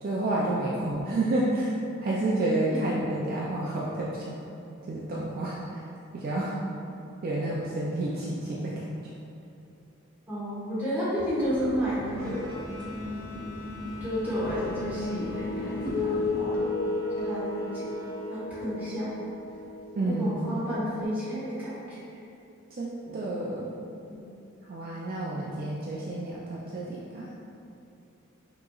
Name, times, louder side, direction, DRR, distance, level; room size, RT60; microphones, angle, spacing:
voice 1, 0.0-1.7 2.0-4.4 4.9-5.8 6.1-6.6 7.2-8.8 20.0-20.4 22.8-23.7 24.7-27.3, right 2 dB, 45° right, -5 dB, 0.4 m, -30 dB
voice 2, 2.7-3.0 10.3-12.6 13.5-13.7 14.0-16.5 17.2-17.9 18.3-19.1 20.0-22.2 23.0-23.1 24.1-24.2, equal, 10° right, -11 dB, 1.4 m, -32 dB
sound 1, 11.4-16.4, equal, 10° left, 0.8 m, -40 dB
sound 2, 12.1-18.4, left 2 dB, 75° right, 0.9 m, -48 dB
sound 3, 14.5-21.0, left 2 dB, 45° left, 0.7 m, -33 dB
6.1 x 3.0 x 2.4 m, 2.6 s
head